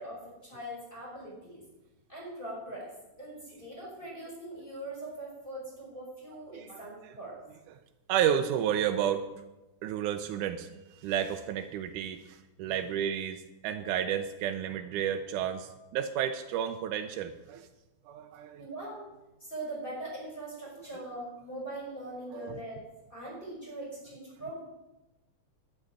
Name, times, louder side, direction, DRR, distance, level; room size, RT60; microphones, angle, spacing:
voice 1, 0.0-1.6 2.1-2.9 3.2-7.4 18.6-19.0 19.4-22.8 23.1-24.6, right 1 dB, 15° left, -7 dB, 5.5 m, -41 dB
voice 2, 6.5-6.8 8.1-9.2 9.8-17.7 18.1-18.7 22.3-22.7, right 9 dB, 90° right, 7 dB, 2.2 m, -31 dB
12.0 x 7.0 x 9.5 m, 1.0 s
omnidirectional pair, 3.5 m